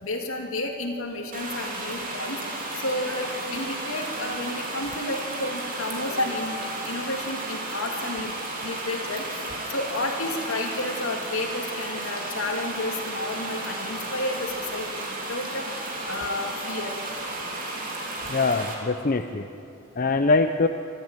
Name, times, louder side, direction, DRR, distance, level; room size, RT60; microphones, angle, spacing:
voice 1, 0.0-2.4 2.7-6.6 6.8-8.3 8.6-9.4 9.7-15.7 16.0-16.9 17.7-17.9, left 2 dB, 65° left, 2 dB, 2.6 m, -31 dB
sound 1, 1.3-18.7, right 2 dB, 40° right, 3.2 m, -33 dB
voice 2, 18.3-19.5 20.0-20.7, left 3 dB, 40° left, 6 dB, 0.6 m, -23 dB
24.0 x 13.5 x 9.1 m, 2.7 s
head